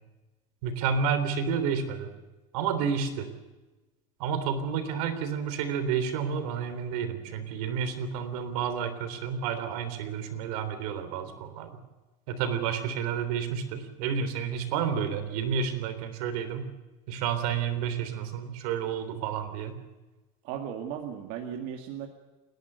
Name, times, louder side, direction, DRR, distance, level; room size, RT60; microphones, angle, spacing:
voice 1, 0.6-2.1 2.5-3.3 4.2-11.7 12.3-16.7 17.1-19.7, right 7 dB, 80° right, 10 dB, 3.6 m, -30 dB
voice 2, 20.4-22.1, right 9 dB, 55° right, 2 dB, 2.1 m, -36 dB
29.5 x 11.5 x 8.1 m, 1.1 s
cardioid pair, 155°, 19 cm